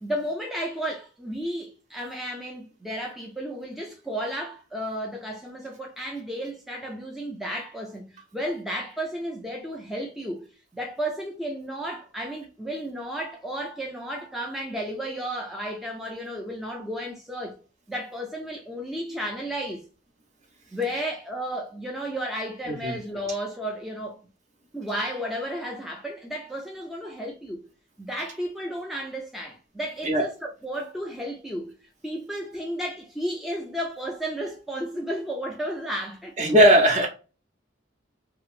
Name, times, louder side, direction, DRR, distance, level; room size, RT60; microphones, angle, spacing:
voice 1, 0.0-10.5 10.7-17.6 17.9-19.9 20.7-24.2 24.7-27.6 28.0-31.8 32.0-36.3, equal, ahead, 0.4 m, -33 dB
voice 2, 22.7-23.0 30.0-30.3 36.4-37.1, equal, 40° right, 0.8 m, -18 dB
2.9 x 2.9 x 2.4 m
head